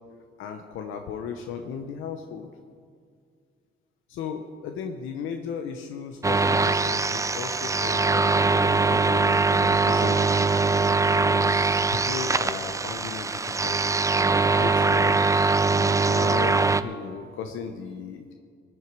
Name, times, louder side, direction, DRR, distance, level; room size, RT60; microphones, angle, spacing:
voice 1, 0.4-2.5 4.1-10.6 11.2-13.8 14.1-15.2 15.7-18.3, left 6 dB, 90° left, 5 dB, 0.9 m, -36 dB
sound 1, 6.2-16.8, right 3 dB, 15° right, 0.4 m, -22 dB
18.5 x 9.9 x 4.7 m, 2.2 s
cardioid pair, 90°, 20 cm